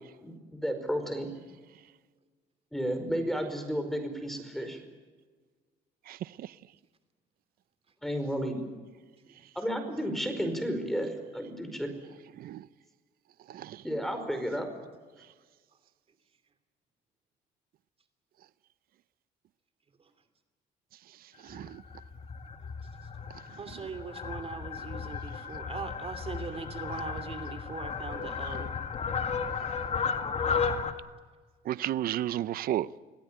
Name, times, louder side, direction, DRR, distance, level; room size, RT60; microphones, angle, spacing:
voice 1, 0.2-1.3 2.7-4.8 8.0-8.6 9.5-11.9 13.8-14.7, equal, ahead, 5.1 m, -32 dB
voice 2, 6.1-6.5 12.4-12.6 13.5-13.8 21.5-21.8 31.7-32.9, right 12 dB, 60° right, 0.7 m, -32 dB
Fowl, 21.5-30.9, left 6 dB, 40° left, 2.2 m, -34 dB
voice 3, 23.6-28.7, right 5 dB, 35° right, 2.8 m, -40 dB
26.0 x 17.5 x 9.0 m
cardioid pair, 110°, 17 cm